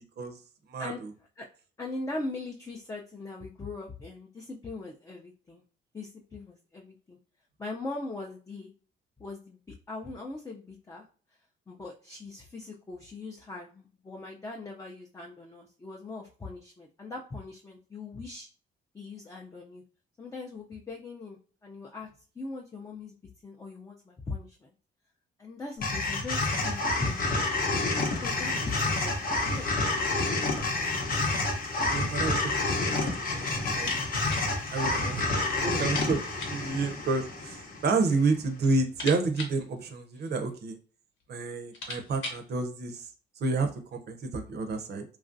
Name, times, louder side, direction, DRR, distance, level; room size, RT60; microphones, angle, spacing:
voice 1, 0.7-1.1 31.9-33.9 34.7-35.3 35.6-40.8 41.3-43.1 43.4-45.0, right 3 dB, 55° right, 6 dB, 0.6 m, -30 dB
voice 2, 1.8-5.6 5.9-7.2 7.6-8.7 9.2-11.0 11.7-18.5 18.9-19.8 20.2-22.1 22.4-23.2 23.4-24.7 25.4-27.5 28.2-29.7, left 3 dB, 15° left, -1 dB, 0.4 m, -40 dB
sound 1, 25.8-38.1, left 2 dB, 45° left, 0.8 m, -29 dB
sound 2, 33.7-34.5 34.8-34.9 35.2-35.3 35.8-36.7 37.6-38.2 38.5-40.5 41.2-41.3 41.6-42.5, left 2 dB, 75° left, 1.0 m, -40 dB
3.0 x 2.4 x 2.5 m, 0.39 s
cardioid pair, 90°, 20 cm